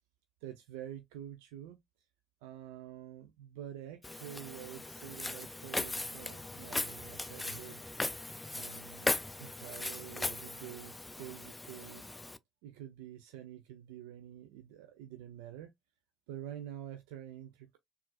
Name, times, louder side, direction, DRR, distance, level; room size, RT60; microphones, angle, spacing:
voice 1, 0.4-1.8 2.4-7.8 8.5-9.1 9.4-12.1 12.6-15.7 16.3-17.8, right 11 dB, 75° right, 0.4 m, -47 dB
Walk footsteps, 4.0-12.4, left 2 dB, 15° left, 0.3 m, -38 dB
3.9 x 2.4 x 2.2 m
hypercardioid pair, 60°, 0 cm